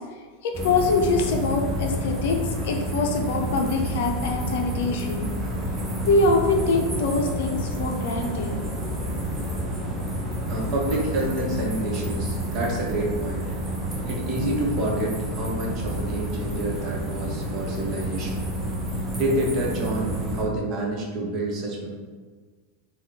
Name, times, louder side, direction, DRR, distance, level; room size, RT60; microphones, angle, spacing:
voice 1, 0.4-5.3 6.0-8.5, left 3 dB, 65° left, 3 dB, 0.5 m, -24 dB
sound 1, 0.5-20.4, right 1 dB, 20° right, 1.0 m, -29 dB
voice 2, 10.5-13.5 14.1-18.5 19.1-21.9, right 1 dB, 45° right, -2 dB, 1.0 m, -28 dB
3.7 x 2.4 x 3.4 m, 1.5 s
hypercardioid pair, 95°, 0 cm